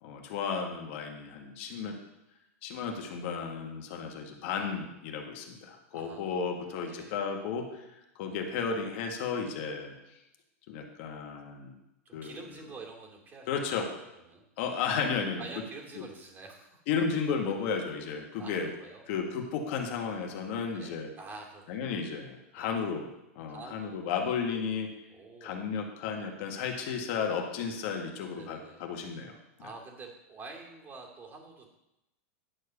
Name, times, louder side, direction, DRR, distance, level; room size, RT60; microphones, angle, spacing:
voice 1, 0.0-2.0 2.6-7.8 8.2-9.9 10.7-11.7 12.1-12.4 13.5-13.9 14.6-15.4 16.0-16.1 16.9-18.7 19.1-21.1 21.7-23.1 23.3-24.9 25.4-29.4, left 6 dB, 55° left, 3 dB, 1.8 m, -33 dB
voice 2, 5.9-6.4 6.9-7.1 12.1-13.9 14.3-14.4 15.4-16.8 18.4-19.0 20.7-21.8 22.6-22.7 23.5-24.2 25.1-25.6 26.6-26.7 28.3-28.9 29.6-31.7, right 3 dB, 25° right, 1 dB, 2.5 m, -47 dB
10.5 x 4.8 x 6.8 m, 0.91 s
hypercardioid pair, 125°, 8 cm